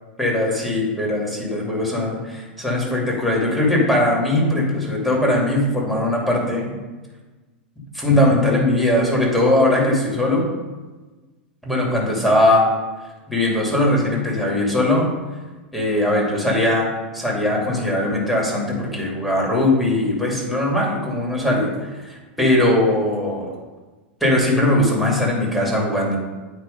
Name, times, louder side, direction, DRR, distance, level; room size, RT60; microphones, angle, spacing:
voice 1, 0.2-6.7 7.9-10.5 11.6-12.7 13.3-15.1 15.7-21.7 22.0-23.5 24.2-26.2, left 1 dB, ahead, -3 dB, 2.4 m, -20 dB
9.1 x 3.2 x 5.2 m, 1.3 s
hypercardioid pair, 110°, 6 cm